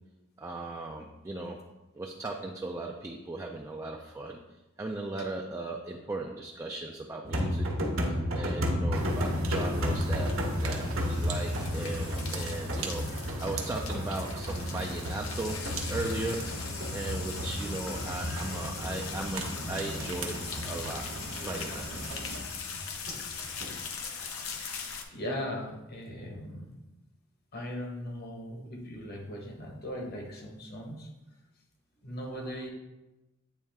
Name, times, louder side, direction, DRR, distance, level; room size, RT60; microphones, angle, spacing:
voice 1, 0.4-1.6 1.9-4.4 4.8-7.7 8.1-16.5 16.9-21.1 21.4-22.1, right 2 dB, 15° right, 1 dB, 0.3 m, -37 dB
sound 1, 7.2-23.8, equal, 70° right, 1.1 m, -33 dB
sound 2, 8.9-22.4, right 2 dB, 85° right, 0.9 m, -40 dB
sound 3, 9.5-25.0, left 6 dB, 85° left, 0.7 m, -41 dB
voice 2, 25.1-26.8 27.5-31.1 32.0-32.7, equal, 50° left, 0 dB, 1.2 m, -38 dB
8.6 x 3.2 x 3.5 m, 1.0 s
head